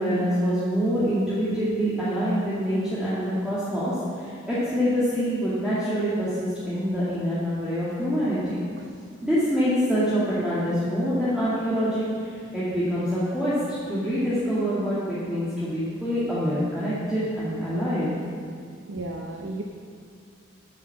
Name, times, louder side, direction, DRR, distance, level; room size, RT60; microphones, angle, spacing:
voice 1, 0.0-8.5 9.2-18.1, equal, 5° right, -11 dB, 1.9 m, -25 dB
voice 2, 8.8-9.2 12.5-12.6 18.9-19.6, right 2 dB, 60° right, 2 dB, 0.7 m, -36 dB
9.2 x 7.4 x 7.5 m, 2.2 s
head